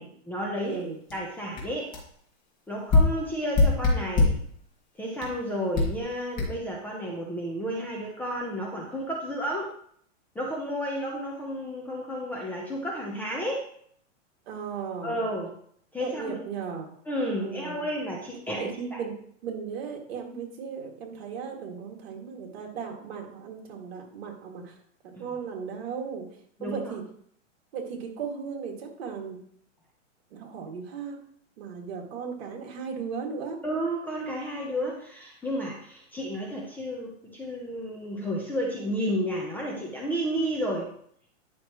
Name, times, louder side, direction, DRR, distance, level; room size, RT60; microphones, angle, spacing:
voice 1, 0.0-0.8 1.1-1.9 2.7-4.3 5.0-9.7 10.3-13.6 15.0-15.5 15.9-16.4 17.1-19.0 25.1-25.2 26.6-26.9 33.6-40.9, equal, 5° left, -3 dB, 0.8 m, -32 dB
voice 2, 0.6-1.0 14.5-15.2 16.0-16.9 17.4-17.9 18.6-19.2 19.4-24.8 25.0-26.3 26.6-27.0 27.7-29.4 30.3-31.2 31.6-33.6, right 6 dB, 55° right, 1 dB, 2.4 m, -36 dB
sound 1, 1.1-1.2 1.6-1.7 1.9-2.1 2.9-4.5 5.2-5.3 5.7-6.0 6.4-6.5, left 3 dB, 20° left, 2.2 m, -22 dB
10.0 x 6.1 x 3.0 m, 0.63 s
hypercardioid pair, 155°, 38 cm